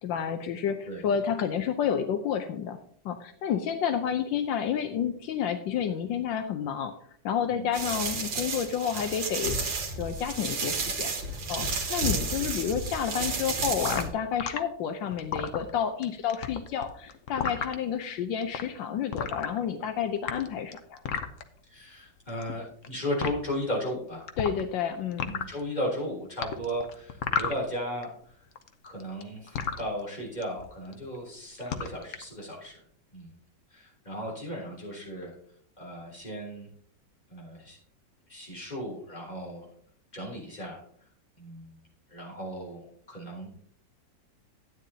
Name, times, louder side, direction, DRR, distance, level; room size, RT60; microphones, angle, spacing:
voice 1, 0.0-2.8 3.0-6.9 7.2-9.6 10.0-21.0 24.4-25.3, left 8 dB, 80° left, 8 dB, 1.4 m, -30 dB
sound 1, 7.7-14.1, right 3 dB, 90° right, 2.3 m, -31 dB
sound 2, 13.8-14.6 15.1-16.0 16.3-17.7 18.4-18.6 19.1-19.8 20.2-21.4 22.3-22.9 23.2-23.3 24.3-24.8 25.1-25.6 26.4-28.0 28.3-29.8 30.4-30.6 30.9-31.2 31.5-32.2, left 7 dB, 55° left, 0.9 m, -32 dB
voice 2, 21.6-24.3 25.3-28.4 28.8-32.8 33.1-33.3 33.7-35.3 35.8-36.7 37.3-37.8 38.3-39.7 40.1-40.8 41.4-41.8 42.1-43.5, equal, 20° left, -3 dB, 3.4 m, -35 dB
12.5 x 9.1 x 2.8 m, 0.62 s
omnidirectional pair, 2.0 m